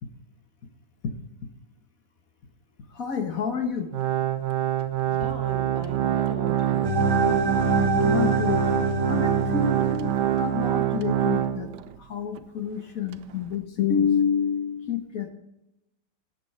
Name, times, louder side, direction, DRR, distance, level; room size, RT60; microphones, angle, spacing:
voice 1, 2.9-3.9 8.0-8.7 9.1-10.1 10.4-15.3, left 6 dB, 55° left, 6 dB, 1.6 m, -28 dB
Organ, 3.9-12.0 12.4-12.5 13.1-13.2, right 11 dB, 85° right, 1.3 m, -25 dB
voice 2, 5.1-7.3, right 3 dB, 40° right, 2 dB, 2.1 m, -38 dB
sound 1, 6.8-10.8, right 1 dB, 15° right, 1.1 m, -26 dB
13.5 x 8.9 x 4.6 m, 0.88 s
omnidirectional pair, 1.8 m